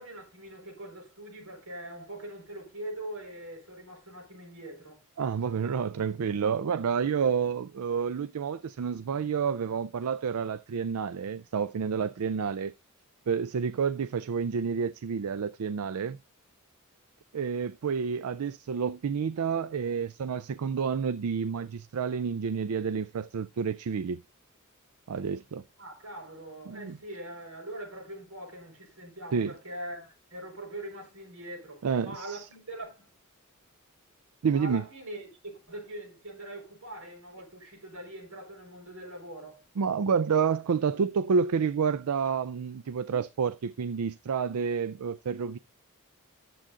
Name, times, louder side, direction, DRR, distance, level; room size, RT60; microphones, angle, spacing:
voice 1, 0.0-5.0 25.8-33.1 34.5-39.6, right 1 dB, 75° right, 6.0 m, -42 dB
voice 2, 5.2-12.7 13.3-16.2 17.3-24.2 25.1-25.6 26.7-27.0 29.3-29.5 31.8-32.4 34.4-34.8 39.8-45.6, right 6 dB, 90° right, 0.4 m, -29 dB
10.0 x 7.6 x 3.8 m
head